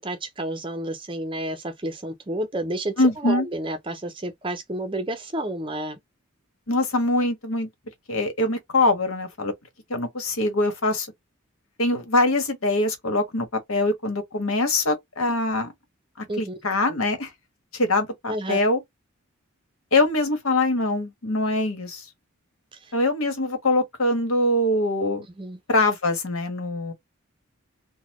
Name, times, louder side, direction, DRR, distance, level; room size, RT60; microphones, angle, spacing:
voice 1, 0.0-6.0 16.3-16.6 18.3-18.6 22.7-22.9 25.4-25.6, right 1 dB, 25° right, 0.6 m, -30 dB
voice 2, 3.0-3.5 6.7-7.7 8.1-9.5 9.9-11.1 11.8-15.7 16.2-17.3 17.7-18.8 19.9-22.0 22.9-25.3 25.7-26.9, left 2 dB, 80° left, 1.3 m, -23 dB
4.0 x 2.2 x 3.0 m
head